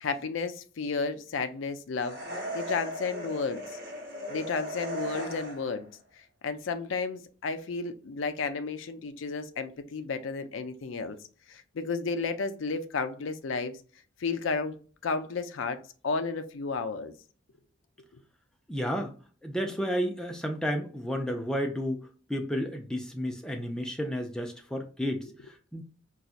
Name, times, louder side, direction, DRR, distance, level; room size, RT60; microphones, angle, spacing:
voice 1, 0.0-2.2 2.5-3.6 4.3-5.9 6.2-11.2 11.5-13.8 14.2-14.8 15.0-15.8 16.0-17.1 25.3-25.5, left 4 dB, 70° left, 10 dB, 0.4 m, -32 dB
sound 1, 2.0-5.8, equal, 55° right, 1.0 m, -37 dB
voice 2, 18.7-19.1 19.4-25.3 25.7-25.8, equal, 5° left, 3 dB, 0.4 m, -31 dB
4.1 x 2.3 x 2.4 m, 0.39 s
head